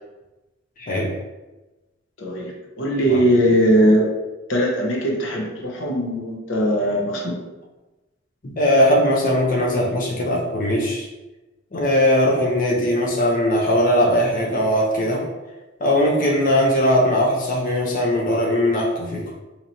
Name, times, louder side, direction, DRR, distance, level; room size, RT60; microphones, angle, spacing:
voice 1, 0.8-1.1 3.0-3.2 8.4-11.1 11.7-15.3 15.8-19.2, equal, 45° left, -3 dB, 0.6 m, -19 dB
voice 2, 2.2-4.1 4.5-7.4, equal, 85° left, -1 dB, 0.8 m, -20 dB
4.2 x 2.9 x 2.7 m, 1.1 s
head